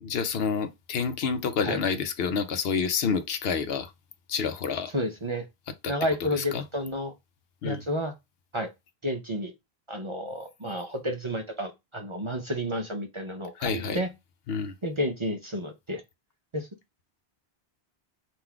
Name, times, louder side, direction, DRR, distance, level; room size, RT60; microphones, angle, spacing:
voice 1, 0.0-3.9 4.3-4.9 5.8-5.9 6.4-6.6 7.6-7.8 13.6-14.0 14.5-14.7, left 6 dB, 70° left, 0.8 m, -28 dB
voice 2, 4.9-5.5 5.9-7.1 7.6-8.1 8.5-8.7 9.0-9.5 9.9-14.1 14.8-16.0 16.5-16.7, equal, 35° right, 0.6 m, -31 dB
3.8 x 2.5 x 4.5 m
omnidirectional pair, 1.1 m